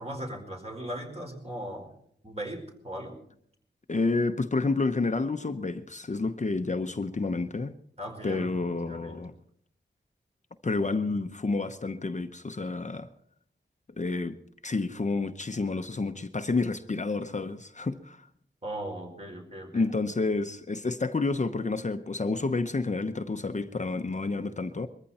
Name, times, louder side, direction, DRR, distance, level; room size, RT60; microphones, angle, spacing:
voice 1, 0.0-1.9 2.2-3.2 8.0-9.2 18.6-19.8, right 1 dB, 35° right, 4.8 m, -38 dB
voice 2, 3.9-7.8 8.2-9.3 10.6-13.1 14.0-14.4 14.6-18.3 19.7-24.9, left 3 dB, 40° left, 0.9 m, -29 dB
22.0 x 14.5 x 4.3 m
wide cardioid pair, 95°, 19 cm